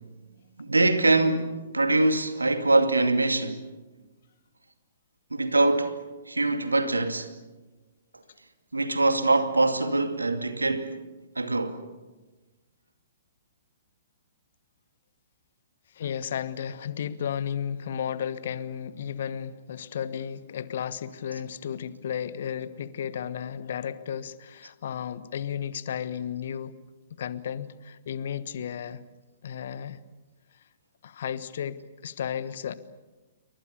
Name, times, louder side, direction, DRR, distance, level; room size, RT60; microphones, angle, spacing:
voice 1, 0.6-3.6 5.3-6.0 6.3-7.3 8.7-11.0 11.4-11.8 21.3-21.4, right 2 dB, 80° right, 2.4 m, -23 dB
voice 2, 15.9-26.7 27.2-29.0 29.4-30.0 31.0-32.8, left 8 dB, 50° left, 1.3 m, -33 dB
28.5 x 24.0 x 7.0 m
figure-of-eight pair, 115°, 0 cm